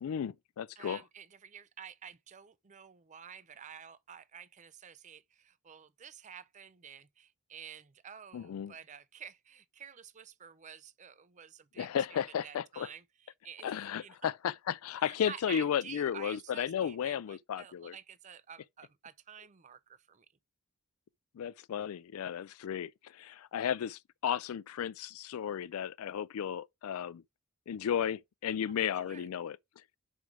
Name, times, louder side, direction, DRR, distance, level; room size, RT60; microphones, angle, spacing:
voice 1, 0.0-1.0 8.3-8.7 11.8-12.9 13.6-17.9 21.3-27.2 27.7-29.6, left 8 dB, 75° left, 0.3 m, -34 dB
voice 2, 0.8-14.3 15.0-20.3 28.8-29.3, right 8 dB, 35° right, 0.5 m, -50 dB
5.4 x 4.6 x 6.1 m
head